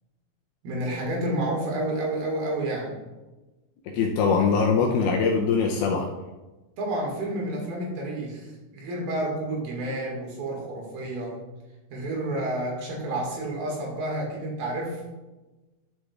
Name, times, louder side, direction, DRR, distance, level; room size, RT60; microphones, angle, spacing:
voice 1, 0.6-3.0 6.8-11.4 11.9-15.0, right 1 dB, 65° right, -2 dB, 3.3 m, -30 dB
voice 2, 3.9-6.1, left 5 dB, 85° left, 0 dB, 2.2 m, -22 dB
12.0 x 6.3 x 2.4 m, 1.1 s
omnidirectional pair, 5.2 m